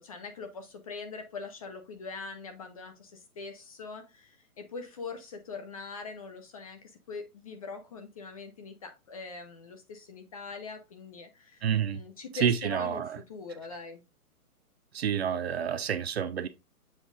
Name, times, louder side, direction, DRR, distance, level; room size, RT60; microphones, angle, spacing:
voice 1, 0.0-11.6 11.9-14.0, left 4 dB, 25° left, 0.6 m, -42 dB
voice 2, 11.6-12.0 12.4-13.2 14.9-16.5, right 8 dB, 45° right, 0.6 m, -28 dB
7.4 x 3.7 x 3.6 m
hypercardioid pair, 150°, 46 cm